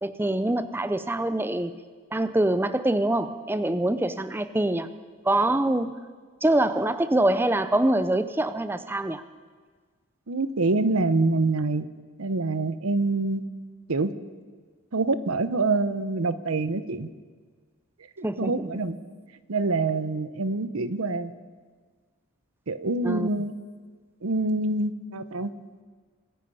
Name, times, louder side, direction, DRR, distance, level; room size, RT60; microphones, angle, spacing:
voice 1, 0.0-1.7 2.1-4.9 5.2-6.0 6.4-9.2 18.2-18.7 23.0-23.3, right 1 dB, 10° right, 11 dB, 0.4 m, -24 dB
voice 2, 10.3-11.8 12.2-13.4 13.9-14.1 14.9-17.1 18.2-19.0 19.5-21.3 22.7-23.6 24.2-25.5, right 3 dB, 85° right, 13 dB, 0.8 m, -26 dB
24.5 x 10.0 x 5.5 m, 1.5 s
head